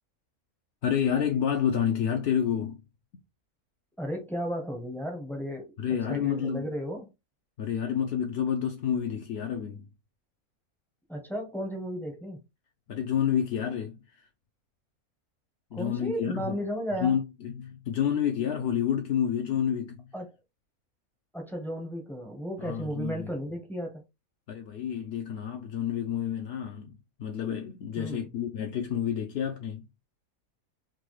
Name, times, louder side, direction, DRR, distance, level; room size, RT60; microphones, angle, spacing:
voice 1, 0.8-2.8 5.8-6.6 7.6-9.9 12.9-14.2 15.7-16.6 17.0-20.0 22.6-23.3 24.5-29.9, left 8 dB, 65° left, 0.6 m, -29 dB
voice 2, 4.0-5.7 6.1-7.1 11.1-12.4 15.7-17.2 20.1-20.3 21.3-24.0 28.0-28.3, equal, ahead, 0.4 m, -34 dB
3.9 x 2.3 x 3.0 m
omnidirectional pair, 1.5 m